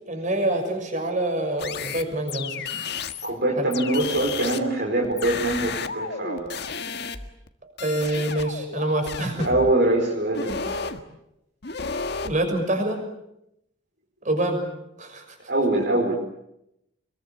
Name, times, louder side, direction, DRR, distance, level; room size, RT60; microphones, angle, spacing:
voice 1, 0.1-2.9 3.6-3.7 7.6-9.5 12.2-13.0 14.2-14.6 15.0-15.4, right 1 dB, 40° right, 5 dB, 6.3 m, -26 dB
sound 1, 1.6-3.3 3.7-7.5 7.8-9.7 10.3-11.0 11.6-12.4, left 5 dB, 55° left, 1.7 m, -32 dB
voice 2, 3.2-6.5 9.4-10.8 15.5-16.1, right 2 dB, 55° right, 0 dB, 4.7 m, -23 dB
26.5 x 22.0 x 8.7 m, 0.84 s
head